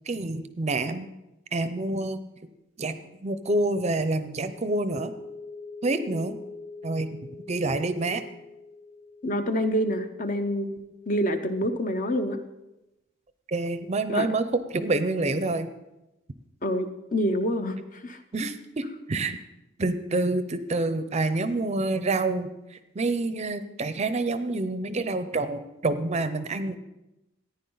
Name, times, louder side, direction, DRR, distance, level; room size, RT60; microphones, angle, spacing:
voice 1, 0.1-1.1 1.5-2.2 2.8-5.1 5.8-6.4 6.8-7.1 7.5-8.2 13.5-15.7 18.3-18.8 19.1-19.4 19.8-26.7, right 2 dB, 35° right, 11 dB, 0.5 m, -27 dB
sound 1, 4.5-11.8, left 4 dB, 85° left, 3.8 m, -44 dB
voice 2, 9.2-10.8 11.1-12.4 14.1-14.3 16.6-18.2, equal, 45° left, 8 dB, 0.8 m, -27 dB
14.5 x 9.6 x 3.9 m, 0.95 s
head